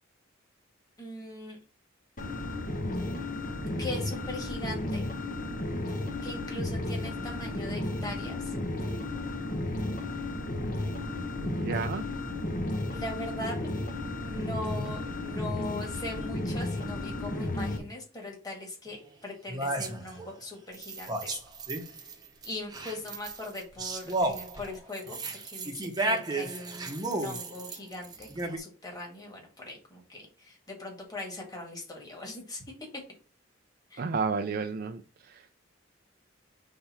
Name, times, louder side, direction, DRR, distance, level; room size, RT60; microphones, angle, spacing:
voice 1, 1.0-1.6 3.8-5.0 6.2-8.5 12.9-13.7 14.2-21.4 22.4-25.2 25.4-32.6 33.9-34.0, left 1 dB, 20° left, 1.9 m, -40 dB
sound 1, 2.2-17.8, left 2 dB, 45° left, 1.0 m, -33 dB
voice 2, 11.4-12.0 34.0-35.0, right 5 dB, 50° right, 0.4 m, -31 dB
sound 2, 18.9-19.0 19.5-20.3 20.7-22.1 22.4-28.6, right 2 dB, 20° right, 0.8 m, -33 dB
5.6 x 3.4 x 5.7 m
head